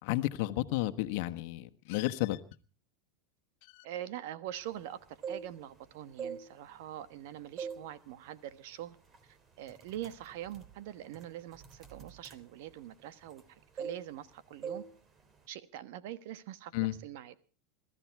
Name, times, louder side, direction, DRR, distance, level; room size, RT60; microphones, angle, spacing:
voice 1, 0.0-2.4 3.7-3.8 16.7-16.9, left 17 dB, 65° left, 8 dB, 1.3 m, -32 dB
voice 2, 3.8-9.0 9.2-14.8 15.5-17.3, right 12 dB, 65° right, 14 dB, 1.3 m, -44 dB
sound 1, 5.0-5.8 6.1-7.2 7.6-7.9 8.3-8.5 9.1-9.3 9.6-13.5 13.8-14.3 14.6-14.9 15.2-15.5, right 6 dB, 30° right, 2.6 m, -43 dB
22.0 x 13.0 x 4.7 m, 0.38 s
supercardioid pair, 120°, 0 cm